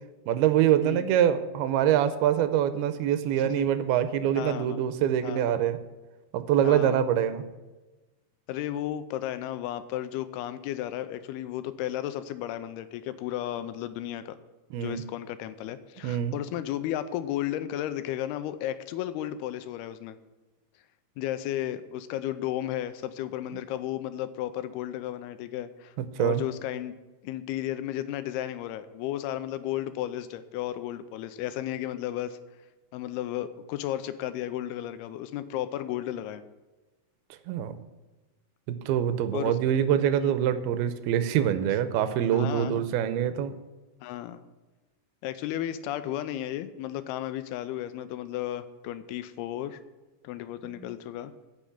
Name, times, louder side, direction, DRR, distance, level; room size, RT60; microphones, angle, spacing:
voice 1, 0.3-5.8 6.3-7.4 14.7-15.0 16.0-16.4 26.0-26.4 37.5-37.8 38.7-43.5 50.6-50.9, right 10 dB, 90° right, 11 dB, 2.7 m, -25 dB
voice 2, 4.4-4.8 5.2-5.4 6.6-7.0 8.5-14.4 14.8-20.2 21.2-26.9 27.2-32.4 32.9-36.4 39.3-39.6 40.2-40.3 42.3-42.8 44.0-44.5 45.2-49.8 50.2-51.3, left 12 dB, 85° left, 12 dB, 2.7 m, -34 dB
10.0 x 6.2 x 8.6 m, 1.2 s
omnidirectional pair, 4.4 m